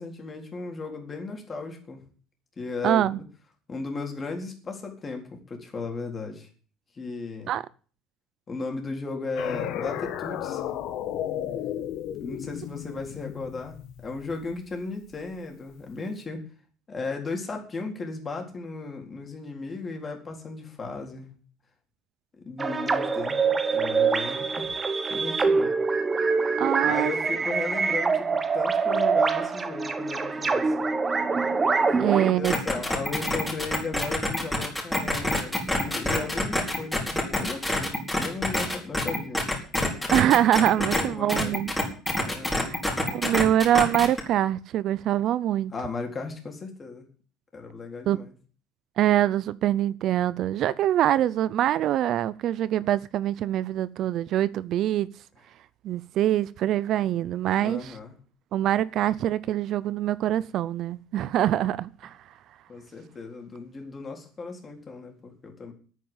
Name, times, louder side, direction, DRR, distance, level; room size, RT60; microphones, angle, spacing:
voice 1, 0.0-2.0 2.6-3.2 3.7-6.5 6.9-7.5 8.5-10.6 12.2-16.4 16.9-21.3 22.4-23.4 23.7-24.7 25.1-25.7 26.8-30.9 32.0-39.4 40.8-41.8 42.2-42.8 45.7-47.1 47.5-48.3 57.6-58.1 62.7-65.7, left 3 dB, 25° left, 4.0 m, -36 dB
voice 2, 2.8-3.2 7.5-7.7 26.6-27.1 32.0-32.5 40.1-41.7 42.6-45.7 48.1-48.2 49.0-55.1 55.8-58.0 58.5-62.2, right 12 dB, 50° right, 0.5 m, -24 dB
sound 1, 9.4-14.7, left 11 dB, 65° left, 1.7 m, -33 dB
sound 2, 22.6-32.3, right 4 dB, 20° right, 1.2 m, -25 dB
sound 3, 32.4-41.0 41.3-44.2, left 1 dB, 5° left, 4.6 m, -26 dB
10.5 x 9.4 x 8.8 m
cardioid pair, 135°, 0 cm